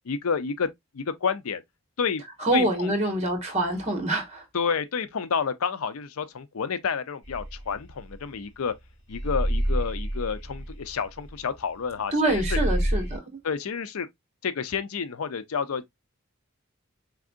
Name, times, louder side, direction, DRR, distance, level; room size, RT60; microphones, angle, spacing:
voice 1, 0.1-0.7 0.9-1.6 2.0-2.2 2.5-2.9 4.5-8.7 9.1-12.6 13.4-14.1 14.4-15.9, left 6 dB, 85° left, 0.5 m, -29 dB
voice 2, 2.4-4.4 12.1-13.4, right 1 dB, 30° right, 1.6 m, -25 dB
sound 1, 7.2-8.7 9.1-12.0 12.3-13.2, right 1 dB, 55° left, 2.7 m, -28 dB
4.7 x 3.6 x 2.4 m
head